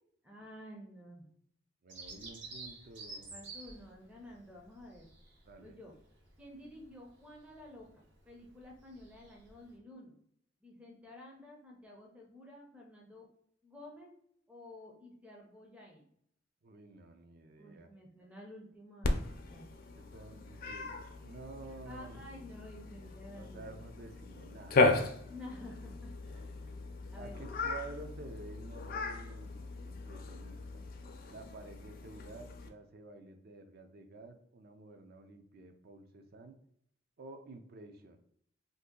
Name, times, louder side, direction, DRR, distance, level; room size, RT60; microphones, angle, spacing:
voice 1, 0.2-1.3 3.3-5.1 5.6-5.9 6.4-10.2 10.6-13.3 13.6-14.1 14.5-16.1 17.6-19.7 21.9-23.7 25.2-26.8 27.1-27.4, left 1 dB, 5° right, -1 dB, 0.5 m, -51 dB
voice 2, 1.8-3.3 5.5-5.8 16.6-17.9 20.0-22.2 23.3-24.8 27.1-30.8 31.3-36.5 37.2-38.2, right 3 dB, 55° right, 6 dB, 0.5 m, -51 dB
Bird vocalization bird call bird song, 1.9-9.8, right 3 dB, 75° right, 1.0 m, -52 dB
Cat, 19.0-32.7, left 3 dB, 50° left, 0.4 m, -36 dB
2.7 x 2.5 x 3.7 m, 0.69 s
head